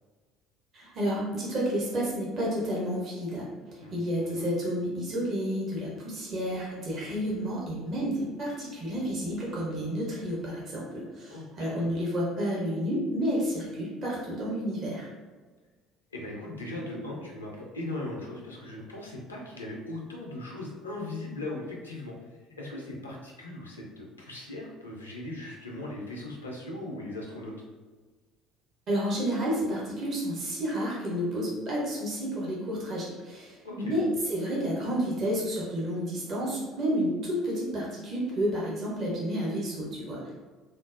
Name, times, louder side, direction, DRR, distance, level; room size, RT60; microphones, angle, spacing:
voice 1, 0.7-15.1 28.9-40.3, equal, 45° right, -5 dB, 0.8 m, -30 dB
voice 2, 11.3-11.9 16.1-22.1 22.6-27.5 33.6-33.9, left 2 dB, 80° left, -2 dB, 0.6 m, -39 dB
3.6 x 2.0 x 2.5 m, 1.3 s
figure-of-eight pair, 55°, 0 cm